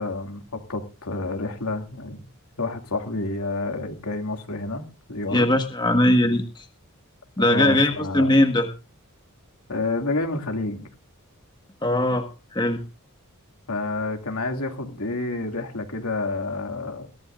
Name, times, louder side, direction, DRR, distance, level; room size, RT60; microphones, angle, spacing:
voice 1, 0.0-2.2 2.6-5.5 7.4-8.4 9.7-10.9 13.7-17.1, left 2 dB, 80° left, 2.4 m, -29 dB
voice 2, 5.3-6.6 7.4-8.7 11.8-12.3 12.5-12.8, left 1 dB, 20° left, 1.5 m, -20 dB
22.0 x 14.0 x 2.5 m
head